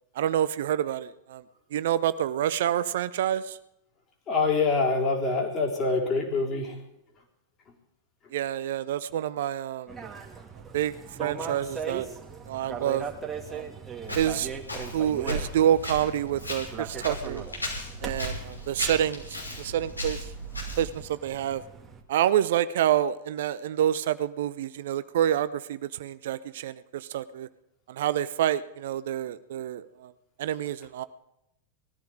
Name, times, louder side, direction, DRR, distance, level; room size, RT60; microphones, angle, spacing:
voice 1, 0.1-1.4 1.7-3.6 8.3-9.9 10.7-12.1 12.5-13.1 13.5-13.7 14.2-14.5 14.9-17.4 18.0-20.3 20.8-21.6 22.1-27.5 27.9-30.1 30.4-31.0, right 11 dB, 55° right, 15 dB, 0.6 m, -27 dB
voice 2, 4.3-6.8, left 4 dB, 30° left, 0 dB, 4.0 m, -25 dB
sound 1, 9.9-22.0, right 6 dB, 10° right, 2.2 m, -40 dB
Walk footsteps, 14.0-21.0, equal, 85° left, 6.2 m, -36 dB
20.0 x 13.5 x 5.0 m, 0.84 s
figure-of-eight pair, 90°, 0 cm